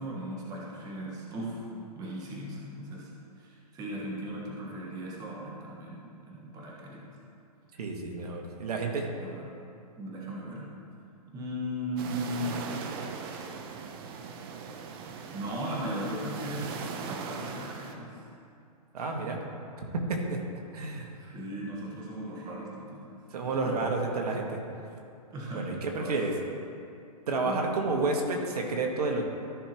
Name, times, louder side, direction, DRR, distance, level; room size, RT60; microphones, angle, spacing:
voice 1, 0.0-1.7 2.0-7.1 9.2-9.6 10.0-10.7 11.3-12.6 15.3-18.2 19.0-19.5 21.2-23.2 23.6-23.9 25.3-26.2 27.3-27.7, equal, 20° right, -4 dB, 1.4 m, -37 dB
voice 2, 7.8-9.1 18.9-19.4 20.1-20.4 20.7-21.1 23.3-24.6 25.5-26.3 27.3-29.2, right 3 dB, 75° right, 1 dB, 1.5 m, -30 dB
sound 1, 12.0-18.0, right 5 dB, 35° right, 0.7 m, -39 dB
14.0 x 6.1 x 3.0 m, 2.5 s
hypercardioid pair, 150°, 20 cm